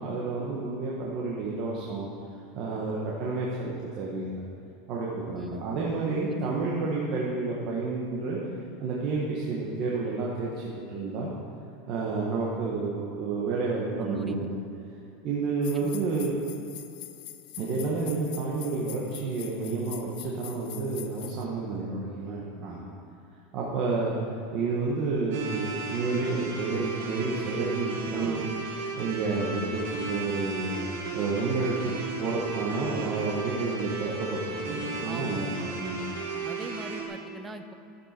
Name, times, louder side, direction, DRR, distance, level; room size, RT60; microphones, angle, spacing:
voice 1, 0.0-2.1 2.5-4.4 4.9-8.4 8.8-11.3 11.9-14.5 15.2-16.3 17.6-22.8 23.5-24.1 24.5-36.0, right 3 dB, 45° right, -5 dB, 1.6 m, -30 dB
voice 2, 5.3-5.7 6.3-6.5 14.0-14.5 15.7-15.9 28.1-28.5 35.0-35.7 36.4-37.7, right 3 dB, 15° right, 8 dB, 0.6 m, -41 dB
sound 1, 15.6-21.4, left 16 dB, 60° left, 0.5 m, -44 dB
sound 2, 25.3-37.1, right 3 dB, 75° right, 2.0 m, -35 dB
13.0 x 7.8 x 4.6 m, 2.7 s
supercardioid pair, 140°, 0 cm